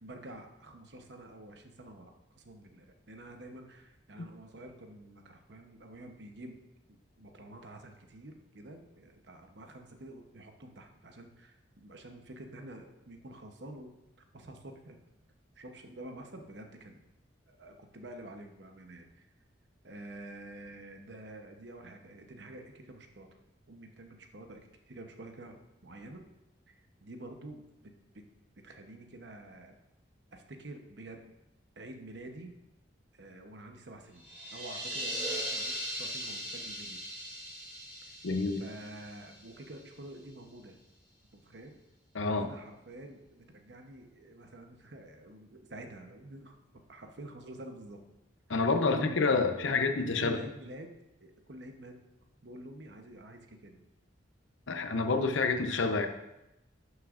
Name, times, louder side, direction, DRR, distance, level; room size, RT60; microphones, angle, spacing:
voice 1, 0.0-6.6 6.9-13.9 14.3-15.0 15.6-17.0 17.5-19.3 19.8-23.4 23.7-26.2 26.7-28.2 28.6-29.7 30.3-31.2 31.8-32.5 33.1-37.0 38.0-38.2 38.6-40.8 41.3-41.7 42.4-46.6 46.9-48.0 48.7-49.2 49.6-49.9 50.2-52.0 52.4-53.8, right 1 dB, 60° right, 4 dB, 0.9 m, -48 dB
sound 1, 34.2-39.8, equal, 10° right, 2.5 m, -39 dB
voice 2, 38.2-38.6 42.1-42.5 48.5-50.4 54.7-56.1, left 4 dB, 85° left, 6 dB, 0.8 m, -28 dB
11.5 x 6.4 x 2.5 m, 0.93 s
head